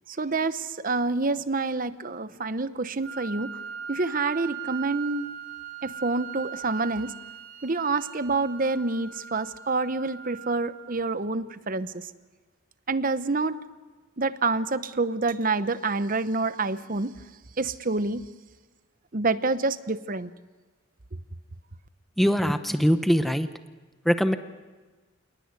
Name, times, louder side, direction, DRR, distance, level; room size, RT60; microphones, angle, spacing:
voice 1, 0.1-3.5 3.9-5.3 5.8-7.1 7.6-12.1 12.9-13.6 14.2-17.1 17.6-18.2 19.1-20.3, right 3 dB, 45° right, 13 dB, 1.0 m, -27 dB
Wind instrument woodwind instrument, 3.0-11.0, right 9 dB, 85° right, 2.9 m, -40 dB
voice 2, 22.2-23.5 24.0-24.3, equal, ahead, 9 dB, 0.9 m, -22 dB
28.0 x 19.0 x 9.7 m, 1.3 s
head